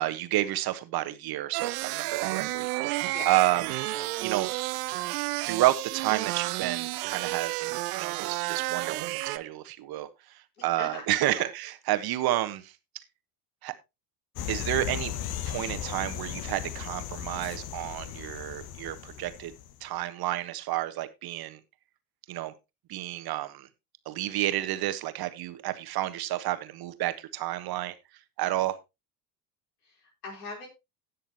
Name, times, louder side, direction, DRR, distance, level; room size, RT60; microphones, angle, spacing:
voice 1, 0.0-3.6 4.2-4.5 5.5-10.1 10.6-12.7 13.6-13.7 14.5-15.1 15.5-19.5 19.8-21.6 22.3-22.5 22.9-23.7 24.0-27.9 28.4-28.8, right 15 dB, 50° right, 11 dB, 1.4 m, -30 dB
sound 1, 1.5-9.4, right 19 dB, 70° right, 0.8 m, -31 dB
voice 2, 10.6-11.0 11.3-11.5 29.8-30.7, left 3 dB, 80° left, 0 dB, 4.6 m, -41 dB
sound 2, 14.4-19.8, left 11 dB, 50° left, 1.1 m, -36 dB
18.0 x 6.6 x 2.9 m, 0.24 s
hypercardioid pair, 70°, 47 cm